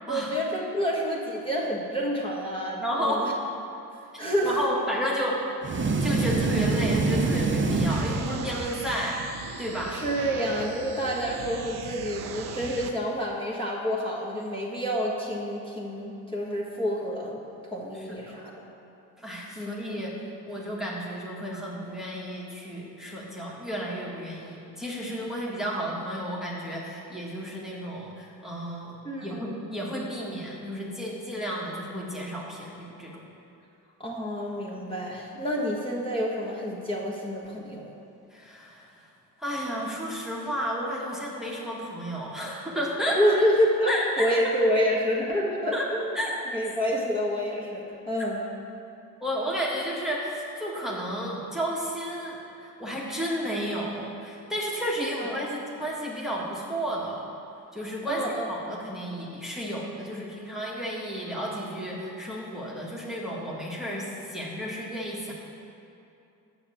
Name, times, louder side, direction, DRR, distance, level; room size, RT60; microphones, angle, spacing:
voice 1, 0.1-3.3 4.2-4.6 9.9-17.4 17.7-18.5 19.6-19.7 29.0-29.5 34.0-37.9 43.1-46.2 46.5-48.4 55.0-55.4 58.1-58.5, equal, 15° left, -4 dB, 1.5 m, -28 dB
voice 2, 2.8-3.2 4.4-5.4 5.7-9.2 9.6-10.0 17.9-18.4 19.2-20.1 20.5-33.2 38.3-38.8 39.4-43.2 43.9-44.3 45.7-45.9 46.1-46.3 49.2-52.4 52.6-57.2 57.7-58.2 58.5-65.3, equal, ahead, -4 dB, 1.5 m, -32 dB
sound 1, 5.6-8.8, right 3 dB, 30° right, 0.8 m, -25 dB
sound 2, 7.9-12.9, right 7 dB, 80° right, 0.7 m, -39 dB
7.1 x 6.0 x 6.8 m, 2.7 s
supercardioid pair, 75°, 38 cm